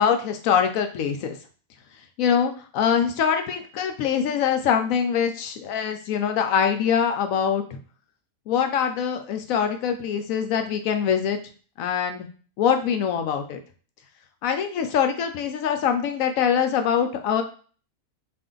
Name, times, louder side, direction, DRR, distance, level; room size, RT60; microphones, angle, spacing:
voice 1, 0.0-1.4 2.2-7.8 8.5-11.4 11.8-12.3 12.6-13.6 14.4-17.4, left 7 dB, 75° left, 6 dB, 1.0 m, -23 dB
3.4 x 2.5 x 3.7 m, 0.40 s
omnidirectional pair, 1.5 m